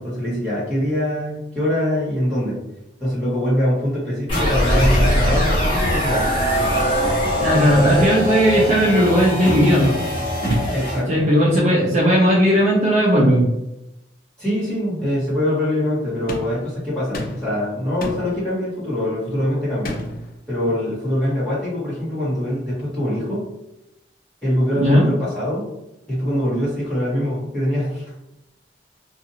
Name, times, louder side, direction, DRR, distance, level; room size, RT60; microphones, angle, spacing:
voice 1, 0.0-2.6 3.0-6.3 10.7-11.3 14.4-19.9 20.5-23.5 24.4-25.7 26.1-28.0, left 1 dB, 5° left, -11 dB, 1.5 m, -23 dB
sound 1, 4.3-11.0, equal, 30° left, 1.0 m, -21 dB
voice 2, 7.4-10.0 11.1-13.5 24.8-25.0, equal, 40° right, -5 dB, 0.6 m, -16 dB
sound 2, 16.3-16.6 17.1-17.6 18.0-18.4 19.8-20.3, left 1 dB, 50° left, 0.5 m, -30 dB
2.6 x 2.4 x 2.8 m, 0.89 s
head